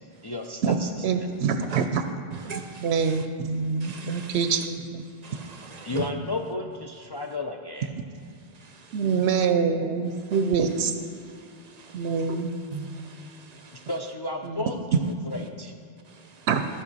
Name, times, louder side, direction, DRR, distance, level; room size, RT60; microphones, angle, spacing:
voice 1, 0.2-0.9 5.8-7.9 13.9-14.8 15.3-15.7, left 2 dB, 40° left, 2 dB, 0.3 m, -32 dB
voice 2, 1.0-2.0 2.8-5.0 8.9-10.9 11.9-12.5 14.4-14.6 16.5-16.6, right 6 dB, 85° right, 8 dB, 0.8 m, -25 dB
voice 3, 2.3-3.2 3.8-4.4 5.2-6.1 8.6-9.0 10.3-10.7 11.2-12.4 12.7-13.9 16.1-16.5, right 5 dB, 50° right, 7 dB, 0.6 m, -38 dB
14.5 x 5.4 x 4.0 m, 2.4 s
omnidirectional pair, 1.1 m